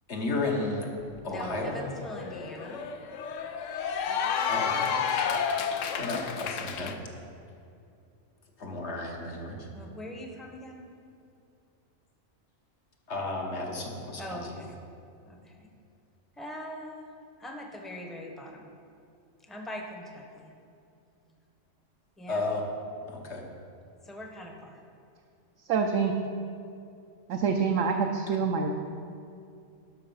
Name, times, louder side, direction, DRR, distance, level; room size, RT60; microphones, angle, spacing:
voice 1, 0.1-0.9 1.2-1.8 4.5-5.0 6.0-7.0 8.6-9.7 13.1-14.4 22.3-22.7 23.1-23.4, left 2 dB, 60° left, 1 dB, 1.4 m, -33 dB
Cheering / Applause, 1.1-1.2 1.5-6.9, left 7 dB, 75° left, 1.0 m, -31 dB
voice 2, 1.3-2.9 4.6-4.8 9.7-10.9 14.2-14.8 15.3-15.7 16.4-17.1 17.4-18.7 19.4-20.5 22.2-22.4 24.0-24.8, equal, ahead, 1 dB, 0.8 m, -41 dB
voice 3, 25.7-26.2 27.3-28.7, right 5 dB, 75° right, 2 dB, 1.0 m, -26 dB
12.0 x 5.7 x 5.5 m, 2.5 s
omnidirectional pair, 1.3 m